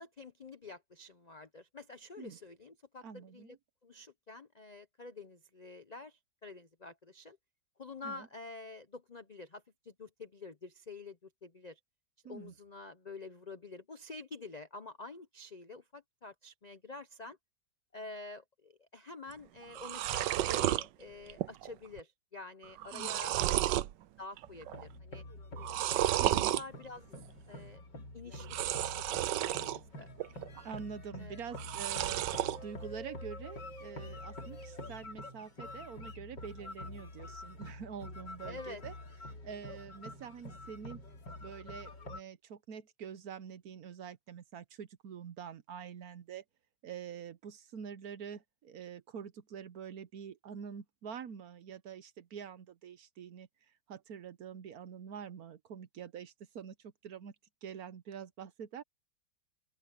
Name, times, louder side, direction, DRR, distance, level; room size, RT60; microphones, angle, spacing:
voice 1, 0.0-3.6 3.8-7.4 7.8-11.8 12.3-17.4 17.9-23.3 23.6-23.8 24.2-25.2 26.0-27.1 27.5-27.8 28.1-30.1 31.2-31.4 38.5-38.8, left 3 dB, 50° left, 0.4 m, -48 dB
voice 2, 3.0-3.6 8.0-8.3 12.2-12.5 22.9-23.4 26.2-26.5 30.6-38.9 39.4-41.0 41.4-46.4 46.8-53.5 53.9-57.3 57.6-58.8, right 7 dB, 60° right, 1.3 m, -46 dB
sound 1, 19.3-19.4 19.6-20.8 21.3-21.7 22.0-22.1 22.6-23.9 24.4-24.8 25.6-26.6 28.4-29.8 30.2-30.8 31.5-32.6, right 14 dB, 80° right, 1.3 m, -32 dB
sound 2, 24.5-42.2, left 1 dB, 70° left, 4.3 m, -47 dB
open air
omnidirectional pair, 1.9 m